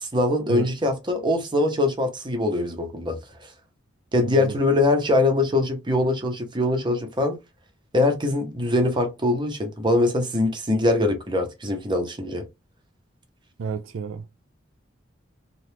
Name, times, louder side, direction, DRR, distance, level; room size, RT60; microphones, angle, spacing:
voice 1, 0.0-3.2 4.1-7.4 7.9-12.4, left 2 dB, 25° right, 0.8 m, -23 dB
voice 2, 13.6-14.3, right 6 dB, 80° right, 0.4 m, -30 dB
2.8 x 2.4 x 3.3 m
head